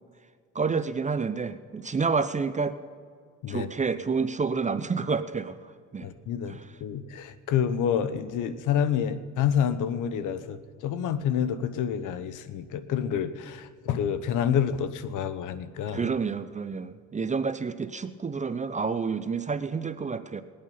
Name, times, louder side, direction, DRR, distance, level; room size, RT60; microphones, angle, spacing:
voice 1, 0.5-2.8 3.5-5.6 5.9-6.1 6.5-6.6 15.9-20.4, right 5 dB, 25° right, 12 dB, 0.6 m, -29 dB
voice 2, 6.0-16.1, left 8 dB, 85° left, 13 dB, 0.9 m, -28 dB
20.0 x 8.8 x 5.4 m, 2.1 s
cardioid pair, 90°, 30 cm